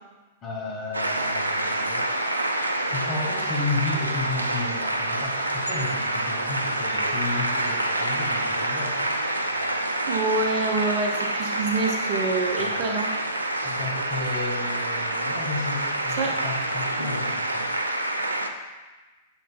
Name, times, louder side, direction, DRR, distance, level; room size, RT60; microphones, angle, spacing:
voice 1, 0.4-2.3 2.9-9.1 12.6-12.9 13.6-17.7, left 3 dB, 30° left, -3 dB, 1.9 m, -33 dB
sound 1, 0.9-18.5, right 1 dB, 85° right, 0.4 m, -27 dB
voice 2, 10.1-13.1 16.2-16.4, right 3 dB, 45° right, 2 dB, 0.8 m, -26 dB
7.3 x 6.5 x 2.2 m, 1.2 s
figure-of-eight pair, 100°, 0 cm